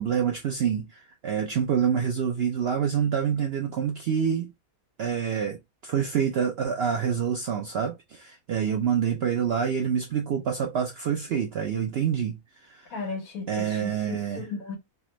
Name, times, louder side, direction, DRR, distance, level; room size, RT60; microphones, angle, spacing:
voice 1, 0.0-4.5 5.0-5.6 5.8-12.4 12.7-12.9 13.5-14.4, right 7 dB, 70° right, 0.6 m, -27 dB
voice 2, 12.9-14.8, left 4 dB, 75° left, 1.4 m, -35 dB
3.3 x 2.1 x 2.9 m
omnidirectional pair, 1.5 m